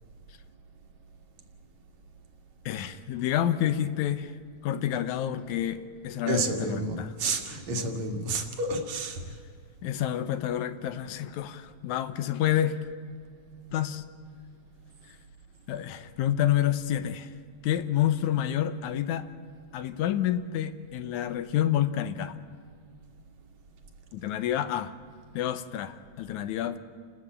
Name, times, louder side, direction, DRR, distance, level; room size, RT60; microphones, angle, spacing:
voice 1, 2.7-4.3 4.6-7.1 9.8-12.8 13.7-14.0 15.7-17.3 17.6-19.3 19.7-22.4 24.1-24.9 25.3-26.8, left 11 dB, 80° left, 12 dB, 2.2 m, -28 dB
voice 2, 6.2-9.3, right 2 dB, 65° right, 4 dB, 3.0 m, -30 dB
29.5 x 12.5 x 8.6 m, 2.1 s
omnidirectional pair, 3.4 m